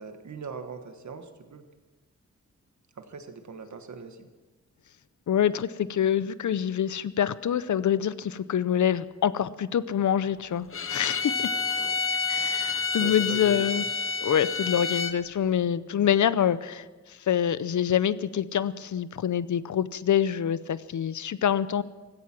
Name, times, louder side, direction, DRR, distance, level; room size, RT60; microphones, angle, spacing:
voice 1, 0.0-1.7 2.9-4.3 11.2-12.0 13.0-13.9, right 5 dB, 75° right, 7 dB, 1.5 m, -41 dB
voice 2, 5.3-11.5 12.3-13.8 14.2-16.8 17.3-21.8, left 9 dB, 90° left, 16 dB, 0.6 m, -26 dB
Bowed string instrument, 10.7-15.2, left 5 dB, 45° left, 0.8 m, -29 dB
16.0 x 14.5 x 6.0 m, 1.3 s
wide cardioid pair, 175°, 29 cm